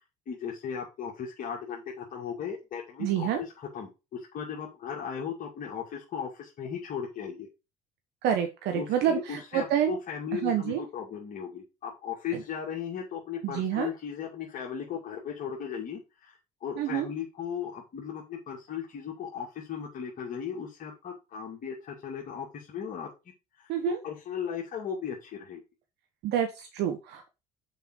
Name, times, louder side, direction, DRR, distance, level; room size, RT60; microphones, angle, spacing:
voice 1, 0.3-7.5 8.7-23.1 23.6-23.7 24.0-25.6, left 7 dB, 50° left, -3 dB, 2.4 m, -37 dB
voice 2, 3.0-3.4 8.2-10.0 10.3-10.8 12.3-12.4 13.4-13.9 16.8-17.1 23.7-24.0 26.2-27.3, right 10 dB, 65° right, 5 dB, 1.3 m, -28 dB
6.7 x 5.6 x 4.7 m, 0.27 s
hypercardioid pair, 60°, 19 cm